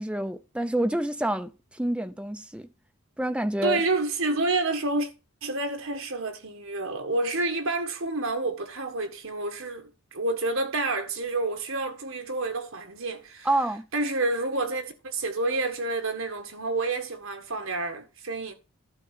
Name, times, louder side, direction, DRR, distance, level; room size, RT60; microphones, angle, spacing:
voice 1, 0.0-2.7 3.2-3.8 13.4-13.9, right 1 dB, 5° right, 0.5 m, -28 dB
voice 2, 3.6-5.1 5.4-13.5 13.9-18.5, right 2 dB, 70° right, 1.7 m, -29 dB
11.5 x 4.0 x 6.7 m
head